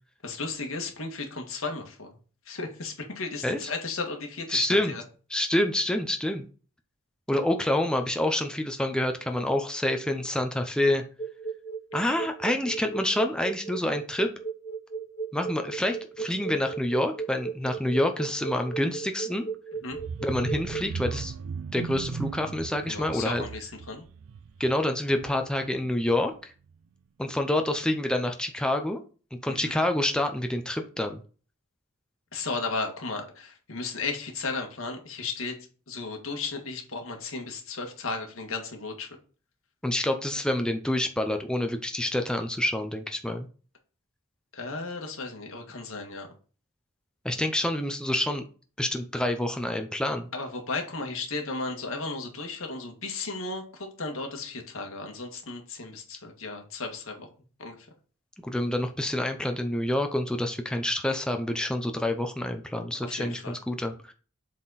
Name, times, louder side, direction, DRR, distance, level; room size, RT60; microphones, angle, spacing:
voice 1, 0.2-2.2 2.5-5.0 19.8-20.0 22.9-24.0 29.5-29.8 32.3-35.6 35.9-39.1 44.5-46.3 50.3-57.3 57.6-57.8 63.0-63.6, left 3 dB, 80° left, 3 dB, 1.8 m, -35 dB
voice 2, 4.5-4.9 5.3-6.5 7.3-11.0 11.9-14.3 15.3-19.5 20.2-21.3 21.7-23.5 24.6-26.5 27.2-29.0 29.4-31.2 39.8-43.5 47.2-48.4 48.8-50.3 58.4-64.1, left 1 dB, 5° left, 5 dB, 0.6 m, -27 dB
sound 1, 11.2-20.8, right 5 dB, 25° left, 1.1 m, -35 dB
sound 2, 19.9-25.7 26.1-26.3 26.6-26.7, right 5 dB, 80° right, 0.4 m, -38 dB
7.4 x 4.3 x 4.1 m, 0.38 s
head